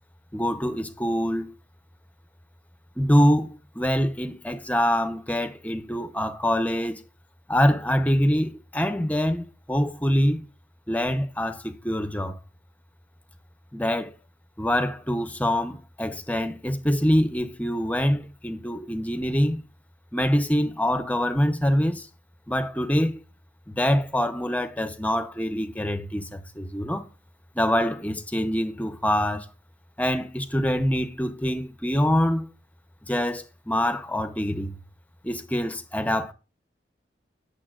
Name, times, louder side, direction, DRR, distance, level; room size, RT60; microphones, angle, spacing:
voice 1, 0.3-1.5 3.0-7.0 7.5-10.4 10.9-12.4 13.7-14.1 14.6-19.6 20.1-22.1 22.5-23.2 23.7-27.1 27.5-29.5 30.0-32.5 33.0-34.8 35.2-36.3, equal, 10° left, 0.7 m, -25 dB
15.5 x 7.0 x 2.4 m
head